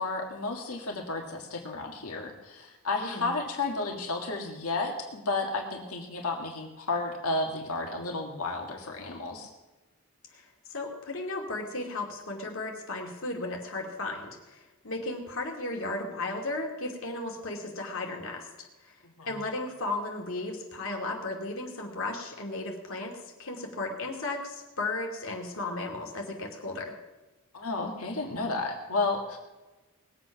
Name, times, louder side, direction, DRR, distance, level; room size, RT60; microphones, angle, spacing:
voice 1, 0.0-9.5 19.2-19.3 27.5-29.4, left 3 dB, 90° left, 1 dB, 1.9 m, -32 dB
voice 2, 10.3-18.9 19.3-23.1 23.4-26.9, left 2 dB, 70° left, 1 dB, 2.6 m, -35 dB
20.0 x 8.0 x 5.9 m, 1.1 s
head